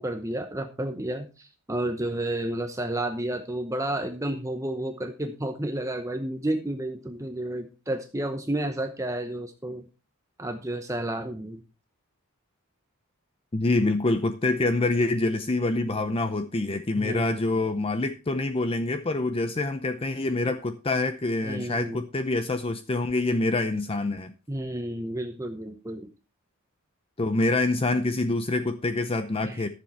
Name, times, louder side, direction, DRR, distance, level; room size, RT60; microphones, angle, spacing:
voice 1, 0.0-9.8 10.4-11.6 17.0-17.4 21.4-22.0 24.5-26.1 29.4-29.7, right 1 dB, 15° right, 6 dB, 0.8 m, -31 dB
voice 2, 13.5-24.3 27.2-29.7, left 2 dB, 25° left, 10 dB, 0.6 m, -26 dB
14.0 x 7.2 x 4.3 m, 0.31 s
head